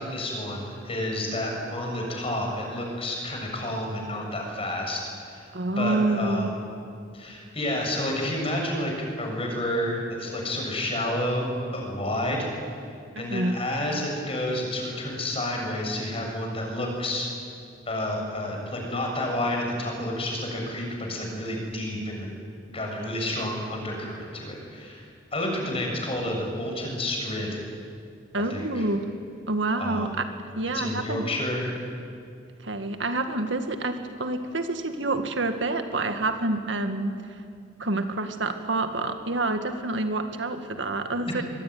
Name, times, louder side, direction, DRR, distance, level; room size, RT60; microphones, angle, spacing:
voice 1, 0.0-6.5 7.1-12.5 13.2-17.3 17.9-22.3 22.7-27.6 28.5-28.9 29.8-30.1 30.7-31.8, left 1 dB, 30° left, 1 dB, 6.8 m, -30 dB
voice 2, 5.5-6.5 13.2-13.6 28.3-29.1 29.5-30.2 30.6-31.2 32.6-37.1 37.8-41.4, right 2 dB, 75° right, 7 dB, 1.9 m, -27 dB
24.5 x 22.5 x 9.5 m, 2.3 s
head